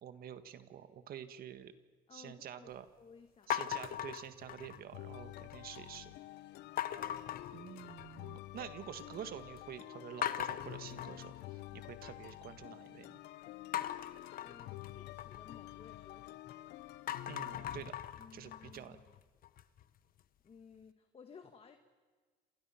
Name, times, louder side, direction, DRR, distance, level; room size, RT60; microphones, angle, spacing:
voice 1, 0.0-1.7 2.1-2.9 3.5-6.1 7.5-13.2 17.3-17.9 18.3-19.0, right 9 dB, 60° right, 10 dB, 1.7 m, -48 dB
voice 2, 2.1-2.7 3.0-3.5 14.4-16.6 18.1-19.1 20.4-21.8, left 6 dB, 35° left, 7 dB, 1.6 m, -57 dB
sound 1, 3.5-5.0 5.4-5.9 6.8-8.3 8.6-9.2 9.6-9.7 10.2-12.3 13.7-16.5 16.9-19.8, left 11 dB, 60° left, 1.1 m, -41 dB
sound 2, 4.9-17.9, left 16 dB, 90° left, 0.8 m, -49 dB
28.5 x 27.5 x 5.8 m, 1.5 s
cardioid pair, 110°, 17 cm